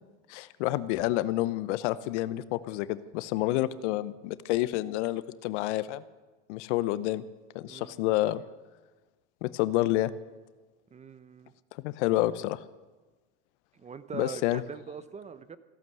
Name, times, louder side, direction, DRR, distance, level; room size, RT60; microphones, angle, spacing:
voice 1, 0.3-6.0 6.5-7.2 7.5-8.4 9.4-10.1 11.8-12.6 14.1-14.6, left 16 dB, 70° left, 15 dB, 0.9 m, -29 dB
voice 2, 7.7-8.1 10.9-11.5 13.7-15.6, right 6 dB, 20° right, 13 dB, 0.8 m, -42 dB
15.5 x 12.0 x 7.7 m, 1.2 s
supercardioid pair, 115°, 37 cm